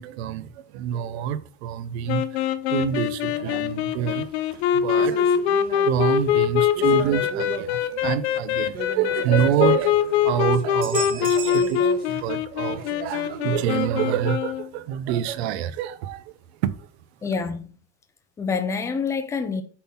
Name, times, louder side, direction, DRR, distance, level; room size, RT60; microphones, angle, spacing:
voice 1, 0.0-2.2 2.7-4.3 4.6-5.1 5.8-10.0 10.2-16.3 16.6-16.9, right 10 dB, 65° right, 0.8 m, -26 dB
sound 1, 2.1-14.7, left 9 dB, 65° left, 0.9 m, -23 dB
sound 2, 3.3-12.3 12.6-13.8, right 7 dB, 25° right, 1.4 m, -38 dB
voice 2, 17.2-17.7 18.4-19.6, left 5 dB, 10° left, 0.5 m, -26 dB
8.4 x 3.8 x 5.7 m
supercardioid pair, 175°, 34 cm